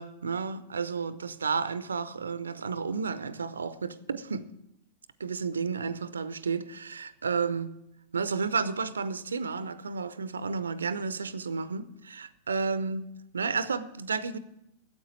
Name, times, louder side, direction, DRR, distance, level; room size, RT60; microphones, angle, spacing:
voice 1, 0.0-4.4 5.2-7.7 8.1-13.1 13.3-14.4, right 5 dB, 75° right, 0.6 m, -32 dB
9.6 x 8.0 x 9.4 m
figure-of-eight pair, 90°, 0 cm